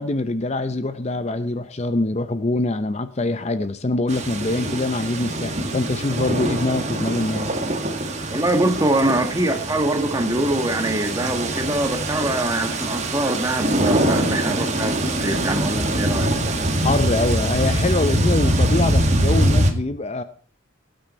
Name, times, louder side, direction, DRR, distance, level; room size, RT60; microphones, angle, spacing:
voice 1, 0.0-7.5 16.8-20.2, left 2 dB, 30° left, 0.6 m, -24 dB
sound 1, 4.1-19.7, right 1 dB, 35° right, 1.9 m, -23 dB
voice 2, 8.3-16.3, right 1 dB, 15° right, 1.5 m, -23 dB
17.5 x 9.0 x 4.3 m
head